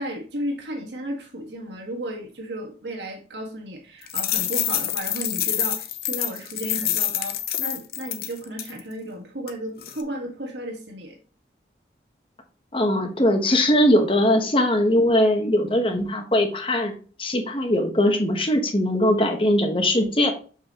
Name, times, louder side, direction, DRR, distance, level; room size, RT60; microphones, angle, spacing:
voice 1, 0.0-11.2, right 1 dB, 85° right, 2 dB, 1.6 m, -34 dB
sound 1, 4.0-8.8 9.5-9.6 9.8-10.0, left 11 dB, 55° left, 0.7 m, -27 dB
voice 2, 12.7-16.9 17.2-20.3, left 1 dB, 30° left, 5 dB, 1.1 m, -20 dB
6.7 x 5.5 x 2.9 m, 0.39 s
head